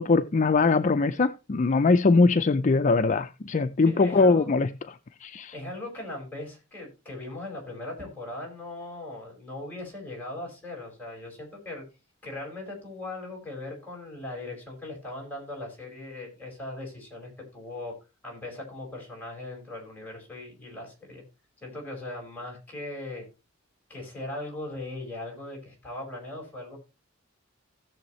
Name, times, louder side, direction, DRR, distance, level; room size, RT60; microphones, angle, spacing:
voice 1, 0.0-4.7 5.2-5.5, left 3 dB, 40° left, 0.4 m, -22 dB
voice 2, 3.8-4.5 5.5-11.8 12.2-17.9 18.2-21.2 21.6-23.3 23.9-26.8, left 2 dB, 10° left, 4.9 m, -39 dB
16.5 x 7.1 x 3.1 m
head